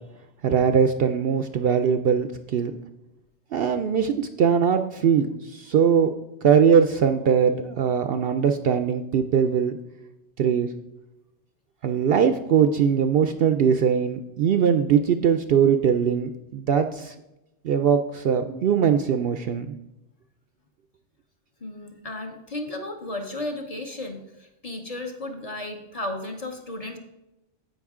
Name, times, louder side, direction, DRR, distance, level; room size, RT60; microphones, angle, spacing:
voice 1, 0.4-2.7 3.5-6.1 6.4-9.8 10.4-10.7 11.8-17.1 17.6-19.8, right 7 dB, 60° right, 8 dB, 0.7 m, -21 dB
voice 2, 21.6-27.0, left 1 dB, 35° left, 3 dB, 0.9 m, -34 dB
15.0 x 5.4 x 3.6 m, 0.93 s
omnidirectional pair, 1.2 m